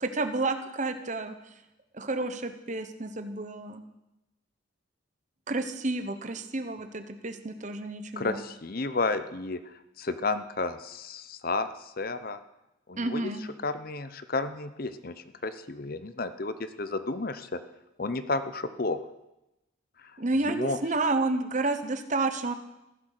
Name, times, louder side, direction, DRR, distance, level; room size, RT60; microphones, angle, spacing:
voice 1, 0.0-1.3 1.9-3.8 5.5-8.4 13.0-13.5 20.2-22.5, right 2 dB, 40° right, 9 dB, 1.1 m, -30 dB
voice 2, 8.2-12.4 12.9-13.3 13.6-15.1 15.4-17.6 18.0-19.0 20.0-20.1 20.4-20.8, left 3 dB, 45° left, 12 dB, 0.8 m, -32 dB
14.5 x 11.0 x 6.6 m, 0.94 s
head